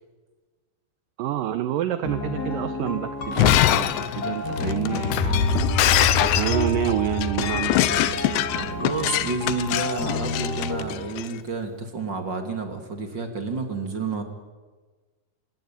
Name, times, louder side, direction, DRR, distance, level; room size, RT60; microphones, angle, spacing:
voice 1, 1.2-3.9 4.2-5.7 6.2-8.7, right 12 dB, 80° right, 12 dB, 2.0 m, -28 dB
sound 1, 2.0-10.8, left 2 dB, 35° left, 1.9 m, -32 dB
Shatter, 3.2-11.3, left 14 dB, 85° left, 3.2 m, -24 dB
sound 2, 5.2-9.5, left 3 dB, 70° left, 6.0 m, -27 dB
voice 2, 8.6-14.2, right 3 dB, 35° right, 6 dB, 2.3 m, -30 dB
26.0 x 19.5 x 8.9 m, 1.3 s
omnidirectional pair, 5.0 m